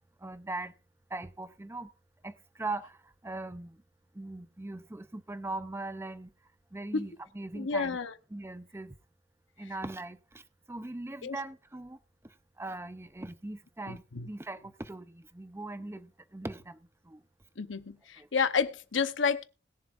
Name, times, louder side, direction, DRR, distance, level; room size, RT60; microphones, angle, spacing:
voice 1, 0.2-0.7 1.1-1.9 2.2-3.0 3.2-3.8 4.1-6.3 6.7-8.0 8.3-9.0 9.6-10.4 10.7-12.0 12.6-16.8 17.1-17.2 18.2-18.3, right 2 dB, 15° right, 0.6 m, -40 dB
voice 2, 7.5-8.1 11.2-11.4 13.9-14.3 17.6-19.4, left 5 dB, 75° left, 0.9 m, -30 dB
21.0 x 7.2 x 2.5 m
head